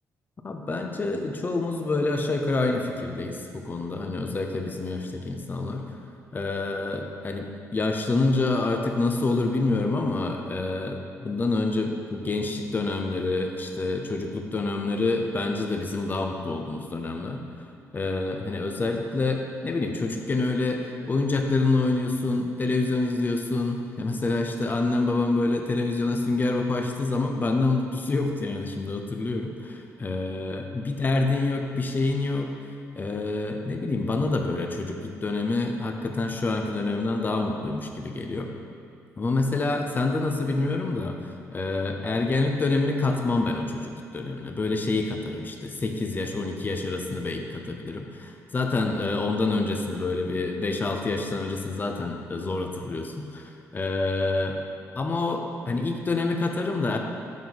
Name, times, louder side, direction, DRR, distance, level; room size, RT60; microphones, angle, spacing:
voice 1, 0.4-5.9 6.3-17.4 17.9-32.5 33.0-38.5 39.2-54.6 55.0-57.0, left 3 dB, 30° left, 3 dB, 0.7 m, -27 dB
7.2 x 3.7 x 6.2 m, 2.4 s
cardioid pair, 95°, 6 cm